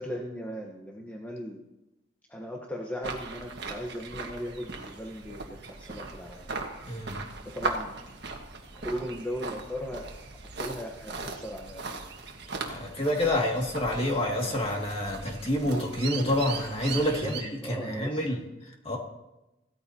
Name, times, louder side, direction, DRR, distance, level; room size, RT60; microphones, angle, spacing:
voice 1, 0.0-1.6 2.3-6.5 7.4-8.0 8.7-12.0 17.2-18.2, equal, 10° left, -1 dB, 1.0 m, -38 dB
sound 1, 3.0-17.4, right 3 dB, 60° right, 1.5 m, -39 dB
voice 2, 6.9-7.2 12.6-17.4 17.7-18.4 18.8-19.0, left 1 dB, 30° left, 0 dB, 2.1 m, -28 dB
17.0 x 13.5 x 2.8 m, 0.95 s
head